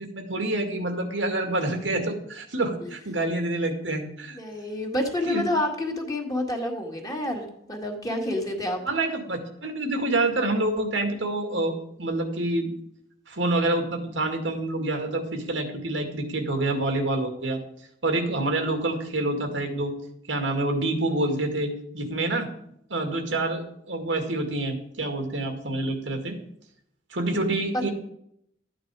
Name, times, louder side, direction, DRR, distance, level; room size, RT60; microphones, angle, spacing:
voice 1, 0.0-4.4 5.3-5.4 8.9-12.7 13.3-17.6 18.0-19.9 20.3-22.5 22.9-23.6 23.9-26.4 27.1-27.9, right 2 dB, 85° right, 5 dB, 2.1 m, -27 dB
voice 2, 4.3-8.8, left 1 dB, 20° left, 1 dB, 1.9 m, -28 dB
13.0 x 8.9 x 4.8 m, 0.73 s
head